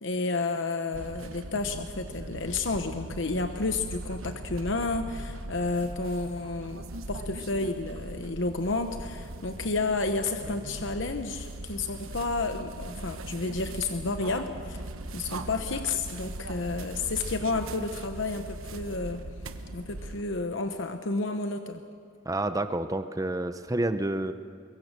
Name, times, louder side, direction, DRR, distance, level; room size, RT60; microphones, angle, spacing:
voice 1, 0.0-14.8 15.1-19.2 19.7-21.8, left 3 dB, 60° left, 7 dB, 1.0 m, -31 dB
sound 1, 0.9-20.2, right 2 dB, 80° right, 1.1 m, -40 dB
voice 2, 22.2-24.3, right 1 dB, 15° right, 10 dB, 0.7 m, -29 dB
24.5 x 22.5 x 6.7 m, 2.3 s
head